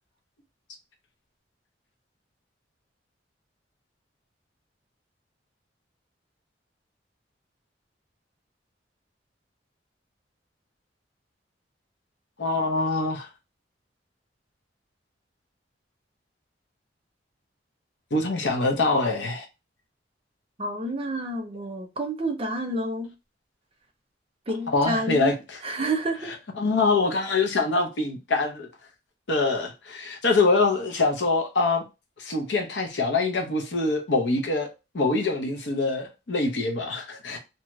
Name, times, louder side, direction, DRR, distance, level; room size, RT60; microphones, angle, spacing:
voice 1, 12.4-13.3 18.1-19.4 24.7-25.3 26.6-28.7 29.3-31.8 32.2-34.7 34.9-37.4, left 3 dB, 75° left, 0.8 m, -24 dB
voice 2, 20.6-23.1 24.5-25.3 25.6-26.3, right 2 dB, 30° right, 0.6 m, -29 dB
2.8 x 2.3 x 2.9 m
head